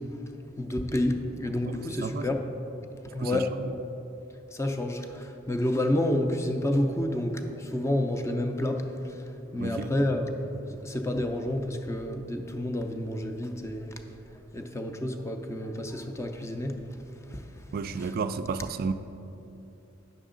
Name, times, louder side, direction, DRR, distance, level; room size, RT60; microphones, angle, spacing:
voice 1, 0.6-2.4 2.9-3.5 4.5-14.2 14.5-17.0 17.3-17.7 18.0-18.1, left 1 dB, 15° left, 0.4 m, -30 dB
voice 2, 1.7-2.4 3.2-3.5 9.6-9.9 17.7-18.9, right 5 dB, 45° right, 0.3 m, -32 dB
9.3 x 6.3 x 3.8 m
head